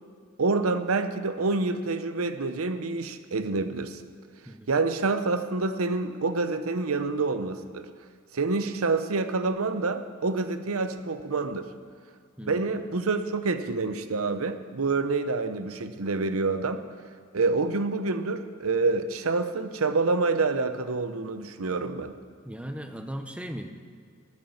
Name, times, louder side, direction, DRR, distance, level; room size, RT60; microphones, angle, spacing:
voice 1, 0.4-4.0 4.7-7.9 8.3-11.6 12.5-16.8 17.3-22.1, right 3 dB, 90° right, 10 dB, 0.8 m, -27 dB
voice 2, 12.4-12.8 22.4-23.7, equal, 5° right, 6 dB, 0.8 m, -37 dB
13.0 x 9.6 x 7.1 m, 2.1 s
head